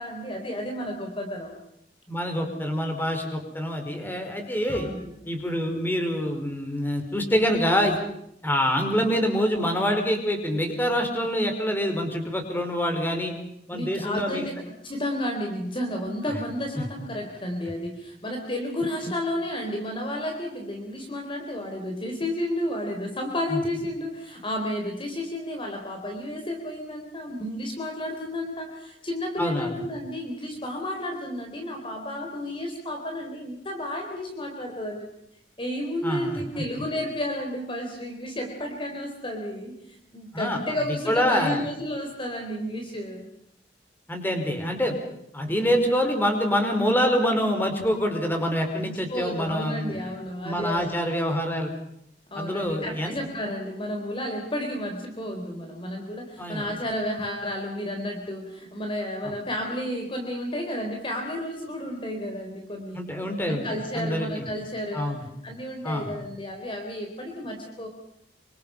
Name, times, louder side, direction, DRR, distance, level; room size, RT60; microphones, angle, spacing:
voice 1, 0.0-1.6 4.7-5.1 13.7-35.1 35.6-43.3 45.5-45.6 48.8-50.9 52.3-63.1 63.4-67.9, left 1 dB, 30° left, 2 dB, 3.8 m, -32 dB
voice 2, 2.1-4.9 5.2-8.0 8.4-13.3 13.7-14.5 16.8-16.9 23.5-23.6 29.4-29.8 36.0-36.4 40.3-40.6 41.1-41.6 44.1-44.9 45.3-50.1 50.4-51.7 52.4-53.1 56.4-56.6 59.2-59.3 62.9-64.4 64.9-65.3 65.8-66.1, equal, 10° left, 4 dB, 5.0 m, -26 dB
27.5 x 26.0 x 5.7 m, 0.75 s
head